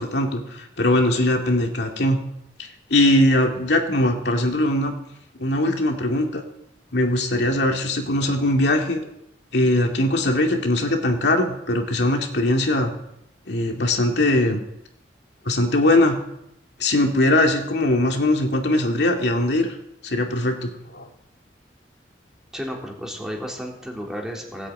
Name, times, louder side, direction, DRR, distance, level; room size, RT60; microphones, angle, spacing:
voice 1, 0.0-2.2 2.6-5.0 5.4-6.4 6.9-9.0 9.5-12.9 13.5-14.6 15.5-16.2 16.8-19.8 20.0-21.1, left 1 dB, 75° left, 2 dB, 2.4 m, -21 dB
voice 2, 22.5-24.7, equal, 5° right, -1 dB, 3.4 m, -32 dB
18.0 x 8.5 x 8.9 m, 0.79 s
head